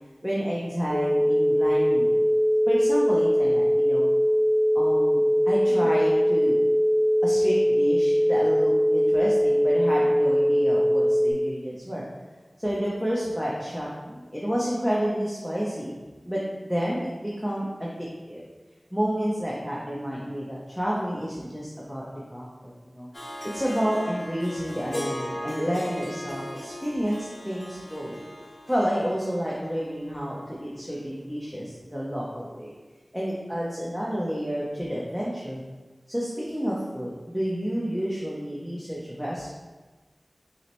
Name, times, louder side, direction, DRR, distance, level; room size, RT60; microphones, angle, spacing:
voice 1, 0.2-2.2 2.7-4.1 4.7-5.2 5.5-6.6 7.2-12.0 12.6-15.9 16.2-18.0 18.3-18.4 18.9-22.1 22.3-23.1 23.5-28.2 28.7-32.7 33.1-35.6 36.1-39.5, equal, ahead, -6 dB, 0.7 m, -30 dB
sound 1, 0.9-11.3, equal, 35° right, 0.4 m, -21 dB
Harp, 23.1-30.3, left 1 dB, 45° left, 0.7 m, -38 dB
5.5 x 2.1 x 3.0 m, 1.2 s
wide cardioid pair, 45°, 0 cm